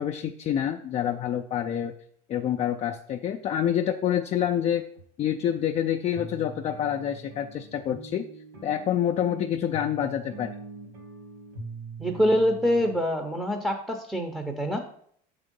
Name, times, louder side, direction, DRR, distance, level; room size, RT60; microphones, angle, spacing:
voice 1, 0.0-1.9 2.3-4.8 5.2-8.2 8.6-10.6, left 10 dB, 35° left, 4 dB, 0.4 m, -27 dB
sound 1, 4.4-4.5 5.0-5.1 5.5-5.6 6.1-12.9, right 3 dB, 70° right, 2.4 m, -43 dB
voice 2, 12.0-14.8, equal, 5° right, 4 dB, 0.7 m, -25 dB
6.7 x 3.6 x 5.3 m, 0.64 s
cardioid pair, 130°, 19 cm